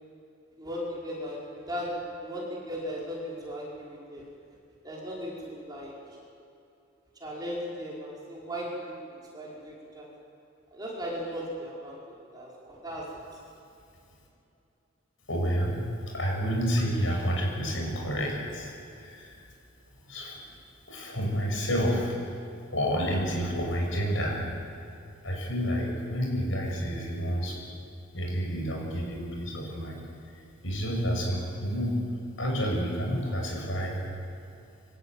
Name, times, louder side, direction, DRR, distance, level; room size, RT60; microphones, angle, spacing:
voice 1, 0.6-4.2 4.8-5.9 7.2-9.0 9.3-10.1 10.7-12.0 12.3-13.1, equal, 20° right, -5 dB, 5.7 m, -37 dB
voice 2, 15.3-15.8 16.1-19.4 20.1-20.4 20.9-22.2 22.7-24.4 25.2-27.6 28.1-30.1 30.3-31.9 32.4-34.0, equal, 70° left, 0 dB, 7.2 m, -29 dB
25.0 x 18.5 x 9.3 m, 2.7 s
head